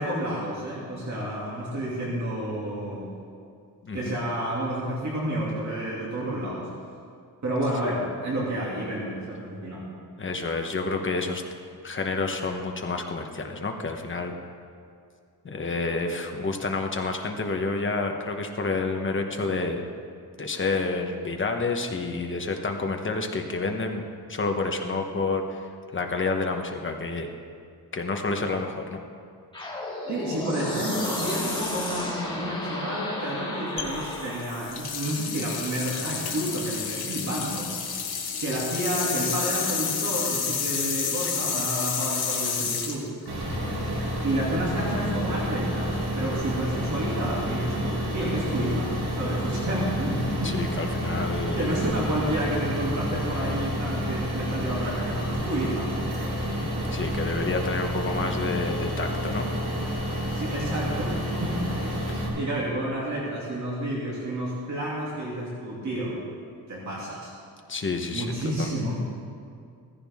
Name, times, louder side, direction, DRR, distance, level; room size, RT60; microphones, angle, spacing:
voice 1, 0.0-3.1 3.9-6.7 7.4-9.8 30.1-37.7 38.4-43.1 44.2-50.6 51.5-55.9 60.1-61.1 61.4-61.6 62.4-66.2 66.7-67.3 68.1-69.0, right 1 dB, 45° right, -6 dB, 2.6 m, -30 dB
voice 2, 10.2-11.4 11.8-14.3 15.4-19.8 20.4-24.0 24.3-25.7 25.9-27.3 27.9-29.0 43.5-43.8 50.4-51.6 56.9-59.5 62.1-62.3 67.7-68.3 68.6-68.7, left 3 dB, 30° left, 3 dB, 1.0 m, -29 dB
sound 1, 29.5-34.6, left 2 dB, 10° left, 2.0 m, -32 dB
sound 2, 33.8-43.9, left 6 dB, 65° left, 1.7 m, -30 dB
sound 3, 43.3-62.3, equal, 75° right, 4.2 m, -29 dB
15.5 x 15.0 x 3.6 m, 2.3 s
wide cardioid pair, 170°, 40 cm